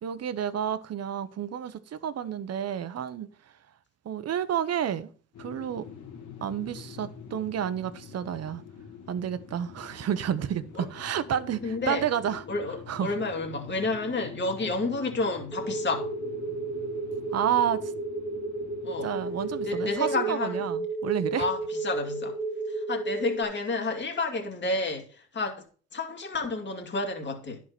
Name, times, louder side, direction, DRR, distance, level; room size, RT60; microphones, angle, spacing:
voice 1, 0.0-3.3 4.0-5.1 5.4-5.9 6.4-8.6 9.1-12.4 12.9-13.1 17.3-17.9 19.0-21.5, right 9 dB, 55° right, 0.9 m, -30 dB
sound 1, 5.3-19.9, left 7 dB, 65° left, 2.0 m, -46 dB
voice 2, 11.6-12.1 12.5-16.1 18.8-19.1 19.7-20.6 21.4-22.4 22.7-25.5 25.9-27.6, left 3 dB, 35° left, 2.5 m, -30 dB
sound 2, 15.5-23.4, right 2 dB, 5° left, 2.4 m, -33 dB
11.0 x 4.8 x 6.0 m
cardioid pair, 90°, 30 cm